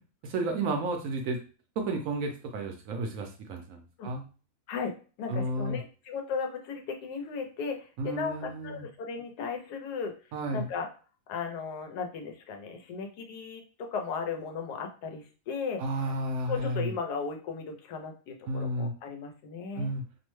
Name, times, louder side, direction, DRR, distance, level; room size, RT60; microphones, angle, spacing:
voice 1, 0.2-1.4 1.8-4.2 5.3-5.8 8.0-8.9 10.3-10.7 15.8-16.9 18.5-18.9 19.8-20.0, right 2 dB, 70° right, 4 dB, 0.9 m, -32 dB
voice 2, 4.7-10.2 10.5-10.9 11.3-15.8 16.5-19.9, left 5 dB, 90° left, 4 dB, 1.2 m, -36 dB
2.9 x 2.1 x 3.0 m, 0.37 s
omnidirectional pair, 1.7 m